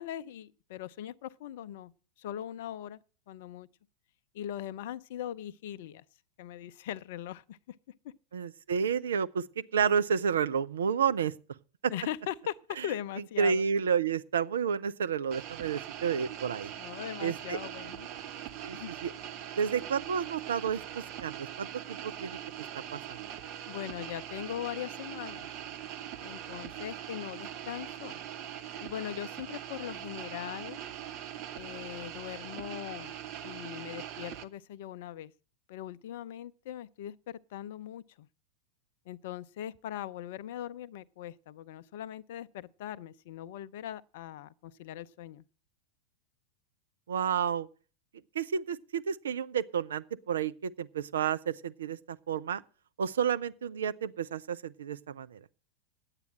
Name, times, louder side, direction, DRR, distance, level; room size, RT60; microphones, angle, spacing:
voice 1, 0.0-1.9 2.2-3.0 3.3-3.7 4.3-6.0 6.4-7.8 8.0-8.1 11.9-13.6 16.8-18.1 18.7-18.9 23.7-25.5 26.2-28.2 28.8-30.8 31.5-33.2 33.4-35.3 35.7-38.3 39.1-45.4, left 11 dB, 55° left, 0.5 m, -40 dB
voice 2, 8.3-11.4 11.8-11.9 12.8-12.9 13.4-16.7 17.2-17.6 18.6-18.8 19.0-19.1 19.6-22.4 22.9-23.2 47.1-47.7 48.3-52.6 53.0-55.4, right 7 dB, 65° right, 0.5 m, -30 dB
sound 1, 15.3-34.4, right 10 dB, 40° right, 0.8 m, -42 dB
9.7 x 8.3 x 7.5 m
figure-of-eight pair, 90°, 0 cm